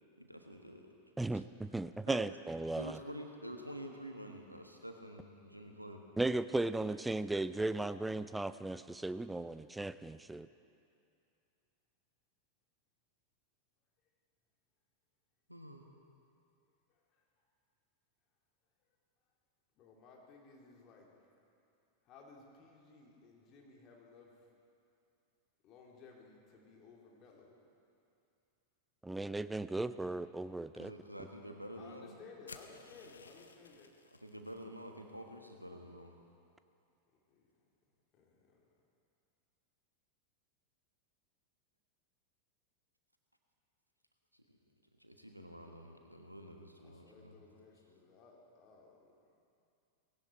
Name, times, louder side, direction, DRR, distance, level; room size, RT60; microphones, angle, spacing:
voice 1, 0.2-0.9 1.3-1.4 2.1-2.2 2.8-6.0 15.5-15.8 30.7-32.2 34.2-36.2 44.5-44.6 45.0-47.4, equal, 90° right, 3 dB, 1.4 m, -48 dB
voice 2, 1.2-3.0 6.2-10.5 29.0-30.9, right 2 dB, 5° right, 14 dB, 0.4 m, -36 dB
voice 3, 19.8-21.1 22.1-24.3 25.6-27.5 31.7-33.9 37.4-37.5 38.1-38.6 46.8-49.1, left 4 dB, 35° left, -1 dB, 2.7 m, -58 dB
sound 1, 32.5-34.6, left 5 dB, 75° left, 0.8 m, -55 dB
18.5 x 17.0 x 4.4 m, 2.6 s
figure-of-eight pair, 90°, 0 cm